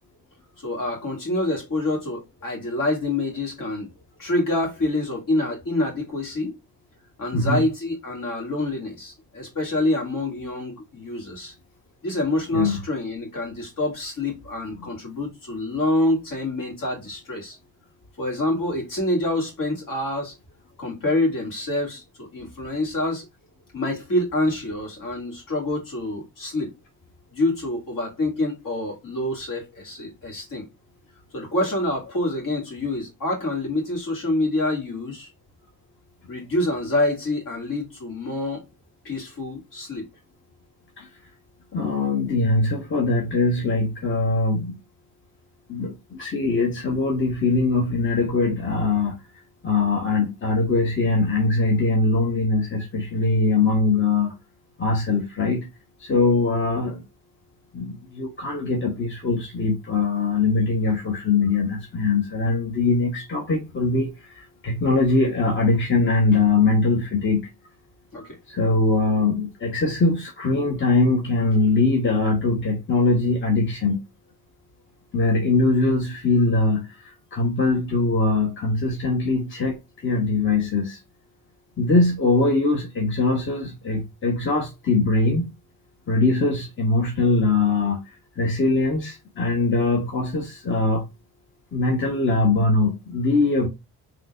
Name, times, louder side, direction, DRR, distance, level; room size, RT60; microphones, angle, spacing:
voice 1, 0.6-3.9 4.2-6.5 7.2-11.5 12.0-17.6 18.2-20.3 20.8-23.3 23.7-26.8 27.3-30.7 31.3-35.3 36.3-38.6 39.0-40.1 68.1-68.2, left 2 dB, 60° left, 2.1 m, -26 dB
voice 2, 7.3-7.7 12.5-12.8 14.8-14.9 41.0-41.1 41.7-44.8 45.7-49.2 49.6-54.3 54.8-55.7 56.0-57.0 57.7-67.5 68.2-74.0 75.1-81.0 81.8-85.5 86.1-88.0 88.4-91.0 91.7-93.7, left 3 dB, 30° left, 0.9 m, -22 dB
3.8 x 2.9 x 2.3 m
supercardioid pair, 60°, 37 cm